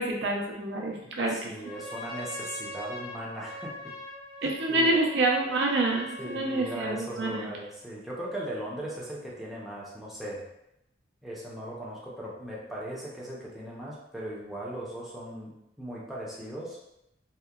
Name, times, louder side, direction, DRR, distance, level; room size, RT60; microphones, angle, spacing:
voice 1, 0.0-1.5 4.4-7.5, right 2 dB, 65° right, 0 dB, 0.4 m, -27 dB
voice 2, 1.0-3.9 4.4-5.0 6.2-10.4 11.2-16.8, right 1 dB, ahead, -7 dB, 0.4 m, -38 dB
Trumpet, 1.5-7.0, left 1 dB, 55° left, 0.5 m, -42 dB
2.7 x 2.1 x 2.3 m, 0.83 s
head